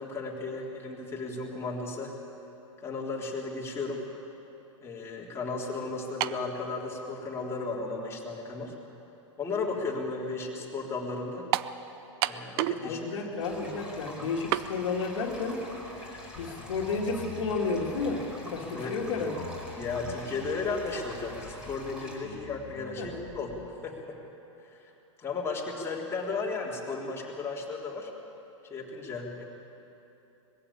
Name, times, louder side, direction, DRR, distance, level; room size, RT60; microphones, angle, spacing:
voice 1, 0.0-2.1 2.8-4.0 4.8-8.8 9.4-11.5 12.2-13.0 16.0-16.4 18.7-19.0 19.7-24.2 24.6-24.9 25.2-28.1 28.7-29.5, left 3 dB, 15° left, -4 dB, 3.6 m, -35 dB
sound 1, 6.2-6.5 7.4-7.5 11.5-11.8 12.2-12.9 13.1-13.2 14.5-14.7, right 15 dB, 50° right, 0.6 m, -28 dB
voice 2, 12.8-15.7 16.4-19.4 23.0-23.2, left 4 dB, 70° left, 0 dB, 2.5 m, -32 dB
sound 2, 13.4-22.2, equal, 5° right, 5.1 m, -46 dB
sound 3, 16.4-23.7, left 8 dB, 45° left, 1.4 m, -46 dB
21.0 x 15.0 x 8.8 m, 3.0 s
hypercardioid pair, 115°, 16 cm